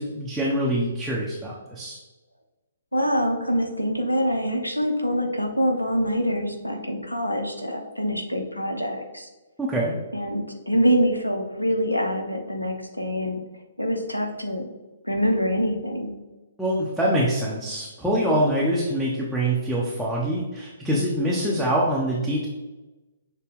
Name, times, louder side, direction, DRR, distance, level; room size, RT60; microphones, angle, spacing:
voice 1, 0.0-2.0 9.6-10.0 16.6-22.5, right 1 dB, ahead, -7 dB, 0.6 m, -24 dB
voice 2, 2.9-9.3 10.1-13.4 13.8-14.7 15.0-16.1, equal, 85° left, 4 dB, 0.7 m, -25 dB
6.5 x 2.2 x 3.4 m, 1.1 s
figure-of-eight pair, 125°, 0 cm